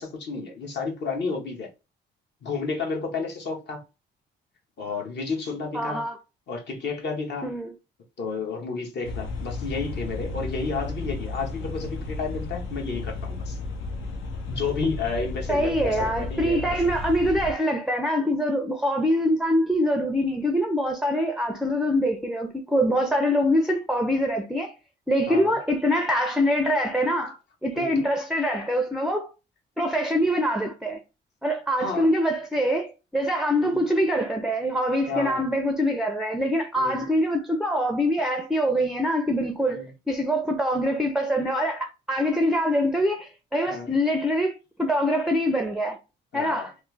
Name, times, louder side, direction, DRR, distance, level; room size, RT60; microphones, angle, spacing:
voice 1, 0.0-1.7 2.4-3.8 4.8-6.0 6.5-7.5 8.2-13.6 14.5-16.8 25.3-25.6 27.7-28.1 31.8-32.1 33.6-33.8 35.1-35.5 36.8-37.0 39.7-39.9 43.7-43.9 46.3-46.7, left 4 dB, 60° left, 1.1 m, -31 dB
voice 2, 5.7-6.1 7.4-7.7 15.5-24.7 25.1-27.4 27.6-29.3 29.8-31.0 31.4-46.0 46.3-46.7, equal, ahead, 0.4 m, -24 dB
sound 1, 9.0-17.5, left 3 dB, 85° left, 0.7 m, -33 dB
3.1 x 2.0 x 3.2 m
cardioid pair, 90°, 20 cm